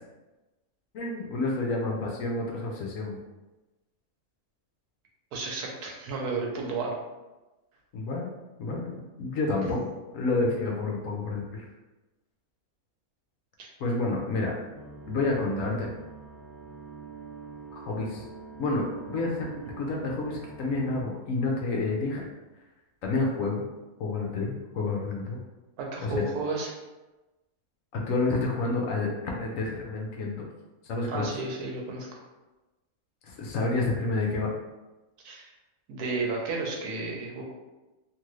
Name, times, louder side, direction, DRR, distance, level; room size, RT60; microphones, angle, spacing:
voice 1, 0.9-3.2 7.9-8.3 8.6-9.8 10.1-11.6 13.8-14.5 15.1-15.9 17.7-18.3 18.6-22.3 23.0-23.7 24.0-25.4 26.0-26.2 27.9-30.5 30.9-31.3 33.2-34.5, left 3 dB, 70° left, -1 dB, 0.9 m, -29 dB
voice 2, 5.3-6.9 13.6-13.7 25.8-26.7 31.1-32.2 35.2-35.4 35.9-37.4, right 3 dB, 80° right, -1 dB, 1.2 m, -32 dB
sound 1, 14.7-21.0, right 4 dB, 45° right, 1.1 m, -44 dB
2.9 x 2.4 x 3.1 m, 1.1 s
omnidirectional pair, 1.6 m